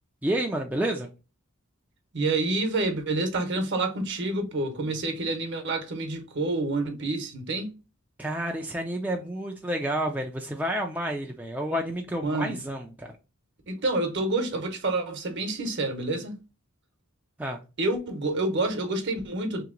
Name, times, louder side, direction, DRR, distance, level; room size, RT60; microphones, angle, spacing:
voice 1, 0.2-1.1 8.2-13.2 17.4-17.6, right 1 dB, 5° right, 0.3 m, -30 dB
voice 2, 2.1-7.7 12.2-12.6 13.7-16.4 17.8-19.6, right 2 dB, 55° right, 0.9 m, -28 dB
3.3 x 2.9 x 3.7 m
head